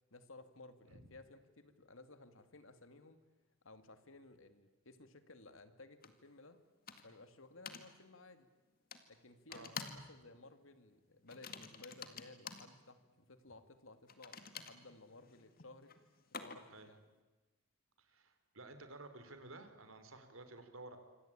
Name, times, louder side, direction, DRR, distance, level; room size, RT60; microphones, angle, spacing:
voice 1, 0.1-3.2 3.6-6.6 7.0-8.5 9.1-15.9 16.4-17.0, left 2 dB, 75° left, 10 dB, 2.3 m, -58 dB
sound 1, 6.0-6.1 6.9-7.2 7.7-7.9 8.9-9.0 9.5-10.1 10.3-10.6 11.3-12.7 14.1-16.8, left 6 dB, 45° left, 2.0 m, -49 dB
voice 2, 18.0-21.0, right 2 dB, 80° right, 8 dB, 3.7 m, -53 dB
26.0 x 26.0 x 8.8 m, 1.2 s
head